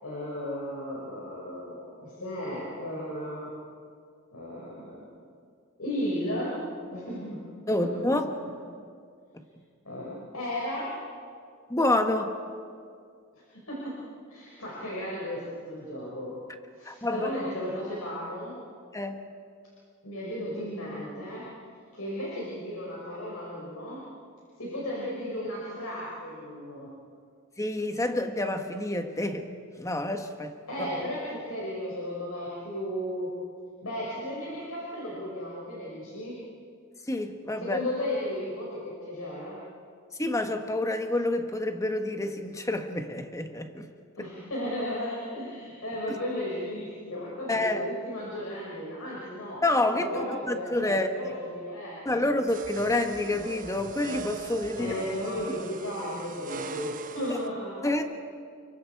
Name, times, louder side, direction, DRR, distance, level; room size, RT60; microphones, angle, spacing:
voice 1, 0.0-3.5 4.3-5.1 5.8-6.6 6.9-7.4 7.8-8.1 9.8-10.9 13.3-14.0 14.3-16.4 16.7-18.5 20.0-21.4 21.9-24.0 24.6-26.9 30.7-33.4 33.8-36.4 37.6-39.6 44.2-49.6 49.9-52.3 54.7-57.9, left 1 dB, 90° left, -5 dB, 5.7 m, -35 dB
voice 2, 7.7-8.3 9.3-9.4 11.7-12.4 16.8-17.3 18.9-19.3 27.6-29.5 29.8-30.9 37.1-37.8 40.2-43.9 44.2-44.3 47.5-47.8 49.6-51.1 52.0-54.9 57.8-58.0, left 2 dB, 15° left, 6 dB, 1.4 m, -28 dB
sound 1, 52.5-57.5, right 4 dB, 40° right, 1.1 m, -39 dB
30.0 x 23.5 x 4.7 m, 2.2 s
head